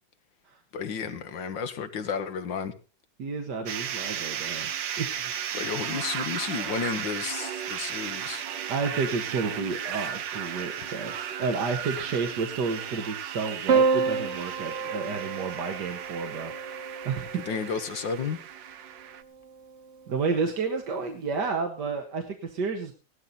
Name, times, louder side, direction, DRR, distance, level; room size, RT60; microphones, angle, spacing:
voice 1, 0.7-2.7 5.5-8.4 17.3-18.4, left 6 dB, 80° left, 2.0 m, -32 dB
voice 2, 3.2-4.7 5.0-5.3 8.7-17.6 20.1-22.9, right 4 dB, 70° right, 2.0 m, -31 dB
sound 1, 3.7-19.2, right 9 dB, 85° right, 1.6 m, -35 dB
Piano, 13.7-18.1 19.3-20.0, right 5 dB, 40° right, 1.6 m, -29 dB
17.0 x 12.5 x 4.1 m
omnidirectional pair, 2.0 m